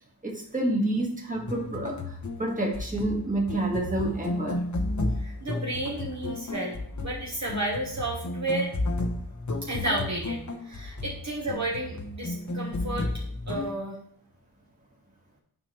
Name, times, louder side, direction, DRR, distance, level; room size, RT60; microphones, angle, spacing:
voice 1, 0.2-4.6, right 1 dB, 20° right, -1 dB, 1.6 m, -29 dB
sound 1, 1.4-13.7, left 2 dB, 40° left, 0.9 m, -33 dB
voice 2, 5.2-8.7 9.6-13.1 13.5-14.0, right 1 dB, 40° right, -4 dB, 1.3 m, -32 dB
8.8 x 4.8 x 3.2 m, 0.62 s
wide cardioid pair, 80°, 43 cm